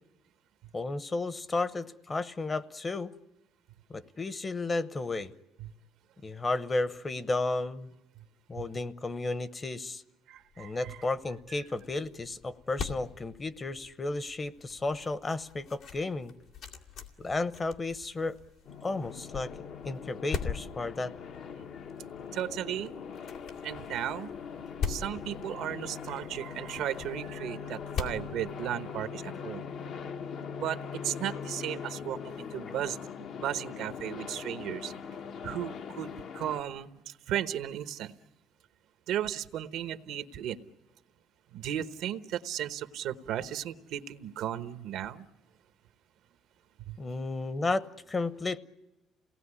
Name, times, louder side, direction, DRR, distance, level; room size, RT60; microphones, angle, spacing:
voice 1, 0.7-3.1 3.9-5.3 6.2-7.9 8.5-10.0 10.6-16.3 17.2-18.4 18.8-19.5 19.8-21.1 32.4-32.9 47.0-48.6, left 3 dB, 25° left, 15 dB, 0.9 m, -33 dB
voice 2, 10.3-11.0 22.3-22.9 23.6-24.3 24.9-29.7 30.6-34.9 35.4-38.1 39.1-40.6 41.5-45.3 46.9-47.0, right 11 dB, 80° right, 11 dB, 1.0 m, -35 dB
sound 1, 10.5-29.2, left 6 dB, 80° left, 2.3 m, -42 dB
sound 2, 18.6-36.6, left 6 dB, 65° left, 1.2 m, -41 dB
28.0 x 18.5 x 9.9 m, 1.1 s
cardioid pair, 105°, 0 cm